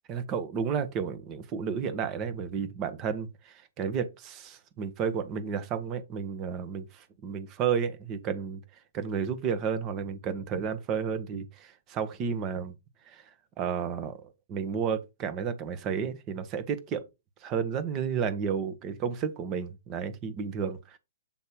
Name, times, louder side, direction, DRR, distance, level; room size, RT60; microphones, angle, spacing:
voice 1, 0.1-8.6 8.9-12.7 13.0-13.2 13.6-14.2 14.5-17.0 17.4-21.0, right 7 dB, 30° right, 1.2 m, -32 dB
7.2 x 3.2 x 4.4 m
hypercardioid pair, 135°, 0 cm